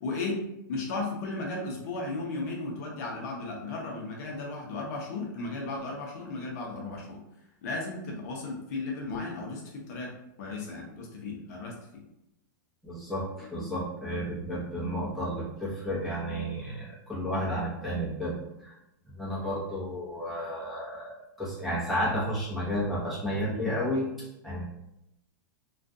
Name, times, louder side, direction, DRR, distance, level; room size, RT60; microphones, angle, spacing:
voice 1, 0.0-0.4 0.7-7.2 7.6-10.1 10.4-12.0, left 3 dB, 55° left, -1 dB, 0.6 m, -35 dB
voice 2, 12.8-18.7 19.1-24.1 24.4-24.6, equal, ahead, -9 dB, 0.7 m, -32 dB
2.4 x 2.2 x 2.5 m, 0.85 s
supercardioid pair, 150°, 11 cm